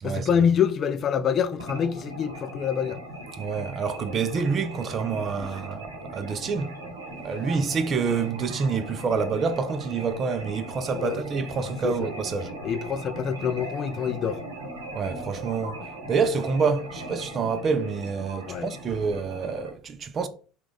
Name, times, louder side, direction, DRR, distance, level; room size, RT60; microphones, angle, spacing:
voice 1, 0.0-3.0 10.9-11.2 11.8-12.1 12.6-14.4 18.4-18.7, left 7 dB, 40° left, 0.3 m, -26 dB
sound 1, 1.6-19.7, right 1 dB, 80° right, 0.8 m, -39 dB
voice 2, 3.4-6.7 7.2-12.5 14.9-15.8 16.1-20.3, right 5 dB, 35° right, 0.4 m, -27 dB
3.6 x 2.3 x 3.4 m
figure-of-eight pair, 70°, 0 cm